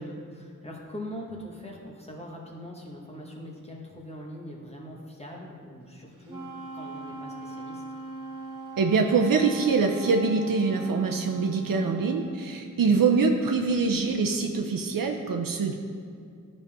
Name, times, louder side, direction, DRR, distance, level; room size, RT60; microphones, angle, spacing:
voice 1, 0.0-6.5 6.7-7.8, equal, 20° left, -2 dB, 1.5 m, -41 dB
Wind instrument woodwind instrument, 6.2-12.4, right 2 dB, 15° right, 2.2 m, -40 dB
voice 2, 8.8-15.7, right 4 dB, 85° right, 3 dB, 0.6 m, -24 dB
13.0 x 5.4 x 3.5 m, 2.4 s
wide cardioid pair, 105°, 33 cm